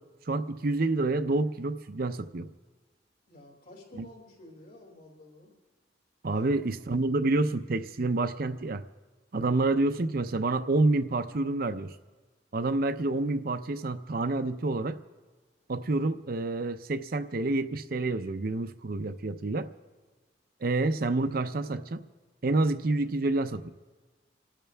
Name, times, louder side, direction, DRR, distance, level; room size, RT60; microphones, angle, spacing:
voice 1, 0.3-2.5 3.9-4.0 6.2-8.8 9.3-11.9 12.5-15.0 15.7-19.7 20.6-22.0 22.4-23.7, right 2 dB, 55° right, 10 dB, 0.6 m, -28 dB
voice 2, 3.3-5.5 6.3-6.6, left 1 dB, 55° left, -1 dB, 4.6 m, -51 dB
29.0 x 12.5 x 3.4 m, 1.4 s
head